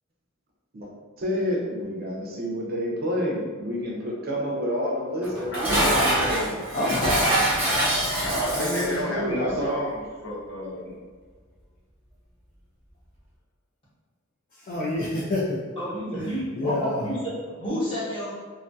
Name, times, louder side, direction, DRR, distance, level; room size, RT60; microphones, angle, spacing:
voice 1, 1.2-6.6 8.5-9.7 16.0-16.3, equal, 50° right, -3 dB, 0.5 m, -29 dB
Dishes pots and pans, 5.2-9.0, right 1 dB, 10° right, 0.8 m, -24 dB
voice 2, 5.5-6.4 8.2-10.9, equal, 60° left, -6 dB, 0.7 m, -31 dB
voice 3, 6.7-8.0 14.7-15.6 16.5-17.0, left 1 dB, 45° left, -5 dB, 0.3 m, -28 dB
voice 4, 15.8-18.3, equal, 25° left, -9 dB, 0.9 m, -30 dB
2.3 x 2.2 x 2.6 m, 1.5 s
head